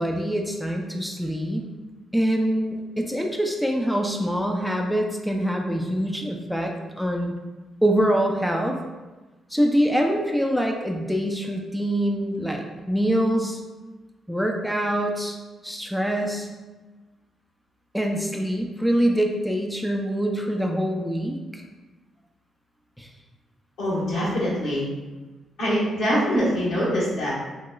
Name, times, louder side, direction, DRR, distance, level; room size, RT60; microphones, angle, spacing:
voice 1, 0.0-1.7 2.1-7.3 7.8-8.8 9.5-13.6 14.3-15.4 15.6-16.5 17.9-21.6 23.0-23.1, equal, ahead, 1 dB, 0.4 m, -24 dB
voice 2, 23.8-24.9 25.6-27.3, equal, 85° left, -9 dB, 1.2 m, -24 dB
2.9 x 2.9 x 2.3 m, 1.2 s
supercardioid pair, 60°, 0 cm